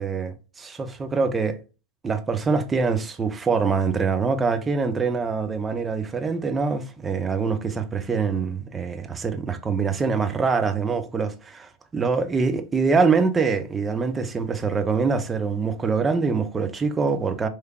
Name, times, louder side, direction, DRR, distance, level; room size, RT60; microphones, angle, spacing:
voice 1, 0.0-1.6 2.0-17.5, right 5 dB, 15° right, 0.6 m, -24 dB
4.5 x 3.2 x 2.3 m
figure-of-eight pair, 90°, 0 cm